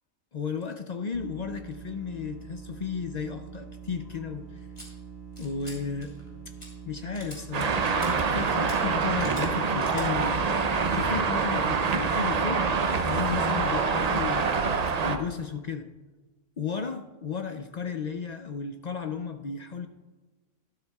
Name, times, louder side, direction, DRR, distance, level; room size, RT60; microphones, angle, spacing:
voice 1, 0.3-4.7 5.4-6.1 6.5-6.6 6.9-7.8 8.3-10.4 10.9-12.7 13.0-14.7 15.0-15.9 16.6-19.9, left 6 dB, 65° left, 6 dB, 0.4 m, -34 dB
sound 1, 1.1-13.2, right 6 dB, 20° right, 1.5 m, -44 dB
sound 2, 4.8-4.9 5.4-5.8 6.0-6.3 6.6-6.7 7.1-7.4 7.9-8.1 8.5-8.8 9.2-9.5 9.8-10.1, equal, 20° left, 3.1 m, -45 dB
Traffic noise roadway noise, 7.5-15.2, right 5 dB, 45° right, 0.6 m, -26 dB
12.5 x 12.0 x 2.3 m, 1.3 s
omnidirectional pair, 1.3 m